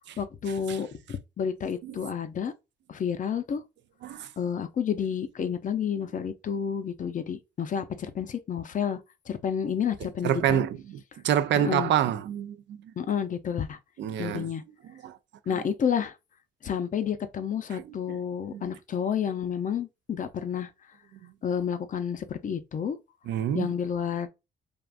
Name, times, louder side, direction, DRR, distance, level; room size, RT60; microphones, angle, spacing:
voice 1, 0.2-2.5 2.9-3.6 4.4-9.0 9.3-10.6 11.6-11.9 13.0-13.8 14.2-14.6 15.5-16.1 16.6-20.7 21.4-23.0 23.5-24.3, left 7 dB, 40° left, 0.5 m, -30 dB
voice 2, 10.0-10.8 11.2-12.8 14.0-14.5 15.0-15.2 15.5-15.6 17.7-17.8 18.1-18.2 18.5-18.6 23.3-23.7, right 10 dB, 65° right, 0.4 m, -27 dB
3.5 x 2.4 x 2.4 m
cardioid pair, 90°, 20 cm